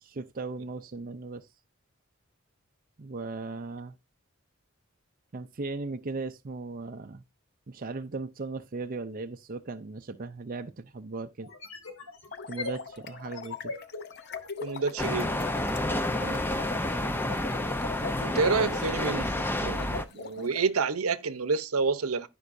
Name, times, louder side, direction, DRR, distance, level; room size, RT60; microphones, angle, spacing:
voice 1, 0.0-1.5 3.0-4.0 5.3-7.2 7.7-11.5 12.5-13.7 16.2-16.4, right 3 dB, 40° right, 0.5 m, -37 dB
sound 1, 10.0-10.1 11.4-15.4, left 3 dB, 75° left, 2.2 m, -40 dB
sound 2, 12.1-20.6, left 4 dB, 50° left, 0.7 m, -42 dB
voice 2, 14.6-15.4 18.2-19.3 19.6-22.3, right 4 dB, 85° right, 0.8 m, -28 dB
sound 3, 15.0-20.0, left 1 dB, 10° left, 0.6 m, -29 dB
14.5 x 5.4 x 2.6 m
head